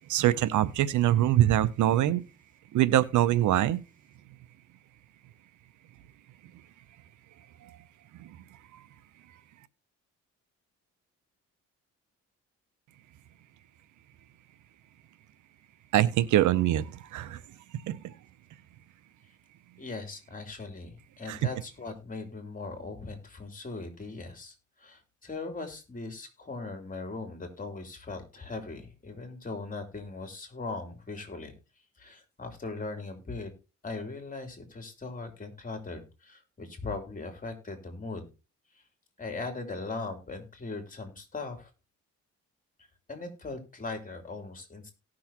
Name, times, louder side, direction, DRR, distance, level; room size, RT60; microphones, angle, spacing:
voice 1, 0.1-2.2 2.7-3.8 7.6-7.7 8.2-8.4 15.9-17.4 17.7-18.1 21.3-21.4, right 13 dB, 75° right, 0.7 m, -24 dB
voice 2, 19.8-31.5 32.0-33.5 33.8-38.3 38.7-38.8 39.2-41.7 42.8-44.9, left 3 dB, 25° left, 3.1 m, -39 dB
17.5 x 6.3 x 2.9 m
cardioid pair, 90°, 30 cm